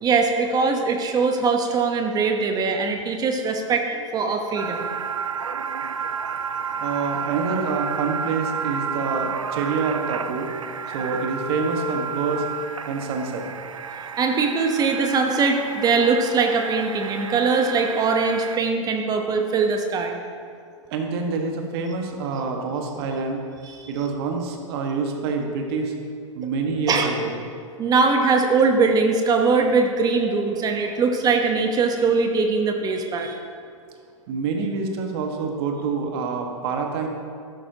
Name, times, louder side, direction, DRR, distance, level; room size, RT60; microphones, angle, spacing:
voice 1, 0.0-4.9 14.2-20.2 23.6-23.8 26.9-27.1 27.8-33.4, right 4 dB, 25° right, 4 dB, 1.0 m, -21 dB
sound 1, 4.6-18.6, right 6 dB, 85° right, 0.5 m, -31 dB
voice 2, 6.8-10.5 10.9-12.4 12.8-13.4 20.9-23.4 23.9-25.9 26.3-27.3 34.3-37.1, right 4 dB, 50° right, 2 dB, 1.6 m, -26 dB
13.0 x 12.0 x 2.9 m, 2.3 s
figure-of-eight pair, 105°, 17 cm